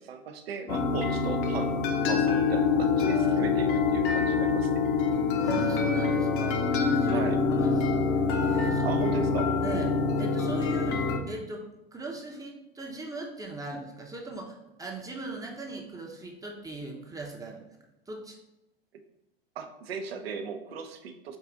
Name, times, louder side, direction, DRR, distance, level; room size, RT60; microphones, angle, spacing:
voice 1, 0.0-1.8 2.1-4.7 7.1-7.4 8.8-9.5 19.6-21.4, right 6 dB, 85° right, 7 dB, 0.6 m, -36 dB
sound 1, 0.7-11.2, left 4 dB, 60° left, 0.8 m, -25 dB
voice 2, 5.4-7.2 7.5-9.0 9.6-17.8 18.1-18.4, right 2 dB, 10° right, 0 dB, 0.6 m, -39 dB
4.7 x 2.4 x 3.8 m, 0.90 s
hypercardioid pair, 100°, 30 cm